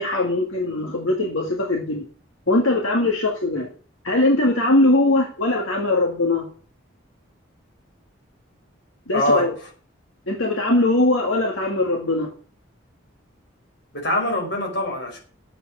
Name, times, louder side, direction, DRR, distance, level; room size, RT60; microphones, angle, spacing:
voice 1, 0.0-2.1 2.5-3.7 4.0-6.5 9.1-9.5 10.3-12.3, left 2 dB, 80° left, 1 dB, 2.0 m, -21 dB
voice 2, 9.1-9.5 13.9-15.2, left 1 dB, 55° left, 1 dB, 5.1 m, -23 dB
10.0 x 8.0 x 7.4 m, 0.42 s
head